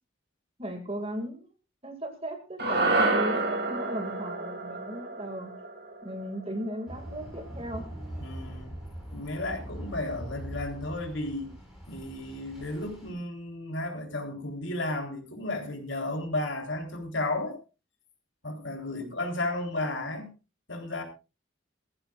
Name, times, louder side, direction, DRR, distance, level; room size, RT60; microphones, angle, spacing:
voice 1, 0.6-1.5 1.8-5.5 6.0-7.9, equal, 30° right, 5 dB, 2.2 m, -37 dB
sound 1, 2.6-7.1, right 2 dB, 50° right, 2.7 m, -29 dB
sound 2, 6.9-13.1, equal, ahead, 5.3 m, -42 dB
voice 2, 8.2-8.7 9.1-11.5 11.9-17.6 18.4-20.3 20.7-21.0, left 2 dB, 70° left, 3 dB, 3.5 m, -33 dB
21.0 x 14.5 x 2.5 m, 0.29 s
head